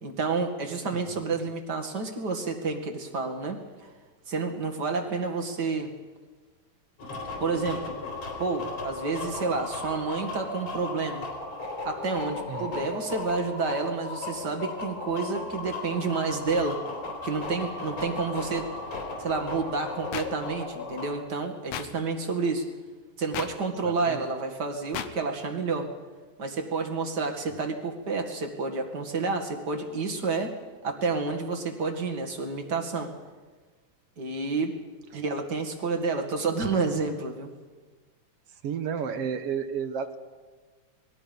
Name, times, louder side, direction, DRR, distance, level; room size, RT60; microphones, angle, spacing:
voice 1, 0.0-3.9 4.3-5.9 7.4-8.0 8.4-11.3 11.8-16.8 17.2-18.7 19.2-22.7 23.2-25.9 26.4-30.5 30.8-33.1 34.2-34.8 35.1-37.5, right 4 dB, 35° right, 4 dB, 2.3 m, -29 dB
sound 1, 7.0-21.1, left 3 dB, 60° left, 5.0 m, -36 dB
voice 2, 12.5-12.8 23.8-24.2 35.1-35.2 38.6-40.2, right 7 dB, 60° right, 9 dB, 1.9 m, -32 dB
sound 2, 20.1-20.3 21.7-21.9 23.3-23.5 24.9-25.1, left 10 dB, 75° left, 2.4 m, -32 dB
27.5 x 21.0 x 5.3 m, 1.3 s
omnidirectional pair, 3.4 m